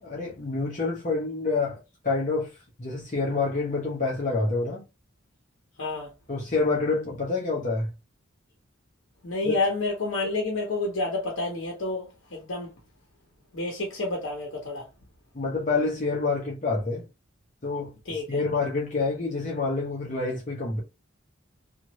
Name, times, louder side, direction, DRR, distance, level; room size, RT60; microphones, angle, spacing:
voice 1, 0.0-1.8 2.0-2.5 2.8-4.8 6.3-7.9 9.4-9.5 15.3-17.0 17.6-20.8, left 3 dB, 40° left, 0.9 m, -27 dB
voice 2, 5.8-6.1 9.2-12.7 13.5-14.9 18.1-18.4, left 2 dB, 75° left, 0.9 m, -29 dB
2.9 x 2.5 x 3.0 m
head